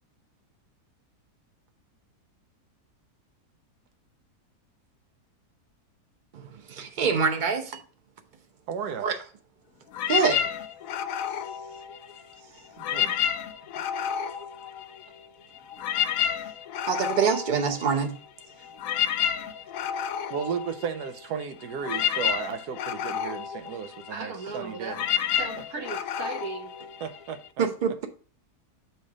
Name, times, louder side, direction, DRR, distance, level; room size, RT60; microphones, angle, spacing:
voice 1, 6.3-7.8 9.0-9.2 10.1-10.4 16.9-18.2 27.6-28.1, right 6 dB, 45° right, 0.7 m, -25 dB
voice 2, 8.7-9.1 12.8-13.2 20.3-25.0 27.0-27.7, right 7 dB, 85° right, 1.3 m, -34 dB
sound 1, 9.9-12.3 12.7-15.3 15.5-27.5, left 9 dB, 70° left, 0.9 m, -30 dB
voice 3, 24.1-25.0 25.4-26.7, right 4 dB, 70° right, 1.8 m, -36 dB
6.8 x 3.2 x 4.9 m
omnidirectional pair, 1.7 m